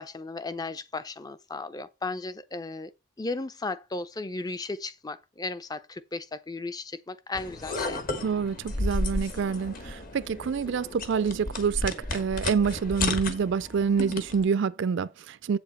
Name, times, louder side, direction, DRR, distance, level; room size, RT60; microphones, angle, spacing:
voice 1, 0.0-2.9 3.2-8.0, left 3 dB, 20° left, 0.4 m, -35 dB
sound 1, 7.3-14.5, left 2 dB, 40° left, 1.3 m, -33 dB
voice 2, 8.2-15.6, right 6 dB, 55° right, 0.4 m, -27 dB
8.1 x 7.0 x 4.2 m
head